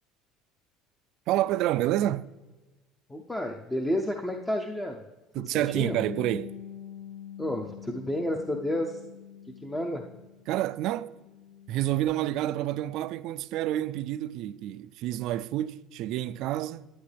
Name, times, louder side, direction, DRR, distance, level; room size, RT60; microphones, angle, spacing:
voice 1, 1.3-2.3 5.3-6.5 10.5-11.1 11.7-16.9, right 13 dB, 55° right, 0.3 m, -28 dB
voice 2, 3.1-5.0 5.7-6.0 7.4-9.0 9.6-10.1, left 1 dB, 10° left, 0.5 m, -30 dB
Bass guitar, 5.8-10.5 10.8-12.0, left 9 dB, 85° left, 2.1 m, -45 dB
10.5 x 10.5 x 3.4 m
cardioid pair, 155°, 0 cm